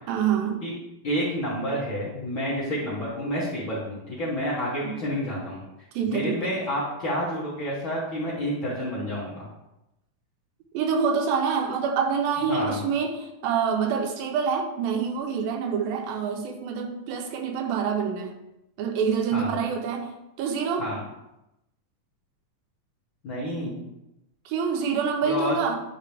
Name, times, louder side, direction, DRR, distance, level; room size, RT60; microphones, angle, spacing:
voice 1, 0.1-0.6 4.8-5.0 6.0-6.6 10.7-18.3 18.8-20.1 20.4-20.9 24.5-25.8, right 6 dB, 80° right, 3 dB, 2.5 m, -26 dB
voice 2, 1.0-5.6 6.0-9.5 12.5-12.8 19.3-19.6 20.8-21.0 23.2-23.7 25.2-25.5, equal, 50° left, -8 dB, 1.5 m, -29 dB
10.0 x 3.8 x 3.3 m, 0.90 s
omnidirectional pair, 4.2 m